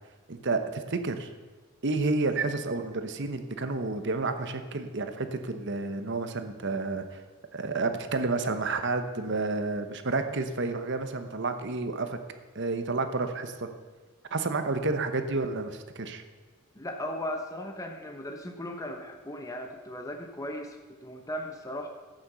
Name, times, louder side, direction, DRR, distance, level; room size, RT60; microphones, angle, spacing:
voice 1, 0.3-1.3 1.8-7.2 7.5-12.2 12.5-13.7 14.3-16.2, right 3 dB, 55° right, 8 dB, 1.0 m, -30 dB
voice 2, 16.7-21.9, left 1 dB, 15° left, 4 dB, 0.9 m, -37 dB
12.0 x 8.9 x 6.9 m, 1.4 s
head